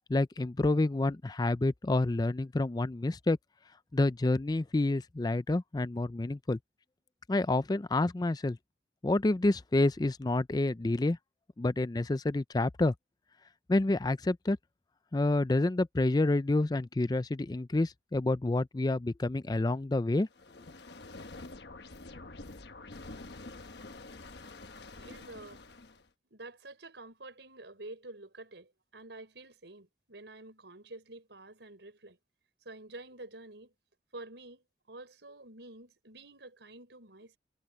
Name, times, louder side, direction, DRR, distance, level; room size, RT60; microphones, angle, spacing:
voice 1, 0.1-3.4 3.9-6.6 7.3-8.6 9.0-11.2 11.6-12.9 13.7-14.6 15.1-20.3, left 2 dB, 25° left, 0.4 m, -28 dB
sound 1, 20.3-26.1, left 2 dB, 70° left, 1.2 m, -47 dB
voice 2, 24.9-25.6 26.3-32.2 32.7-33.7 34.1-37.4, right 2 dB, 85° right, 5.2 m, -49 dB
head